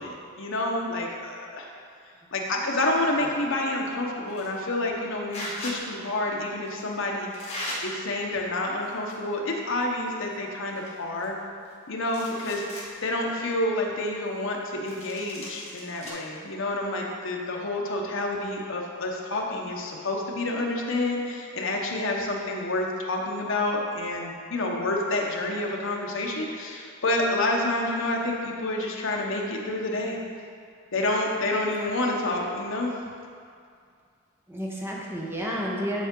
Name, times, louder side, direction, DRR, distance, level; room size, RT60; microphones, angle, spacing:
voice 1, 0.0-1.7 2.3-7.6 7.8-11.4 11.9-12.6 13.0-30.2 30.9-32.9, left 2 dB, 65° left, 0 dB, 1.0 m, -28 dB
sound 1, 4.3-4.6 5.3-5.8 6.7-6.8 7.3-7.8 8.7-9.3 9.6-9.7 10.3-10.4 10.7-11.7 12.0-12.9 13.4-13.5 14.9-16.1, left 1 dB, 30° left, 1.5 m, -38 dB
voice 2, 34.5-36.1, equal, 10° right, -3 dB, 1.0 m, -31 dB
9.9 x 4.6 x 3.8 m, 2.3 s
head